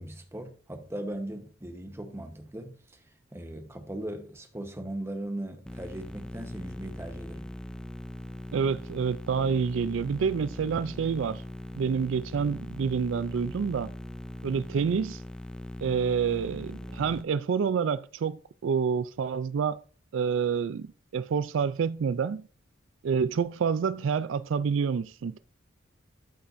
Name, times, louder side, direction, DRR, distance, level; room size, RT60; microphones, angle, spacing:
voice 1, 0.0-3.0 3.3-7.5, right 1 dB, 15° right, 1.1 m, -38 dB
sound 1, 5.7-17.2, left 1 dB, 5° left, 0.5 m, -40 dB
voice 2, 8.5-11.4 11.8-13.9 14.4-15.2 15.8-19.8 20.1-22.4 23.0-25.4, right 6 dB, 85° right, 0.4 m, -28 dB
12.5 x 5.5 x 2.6 m
head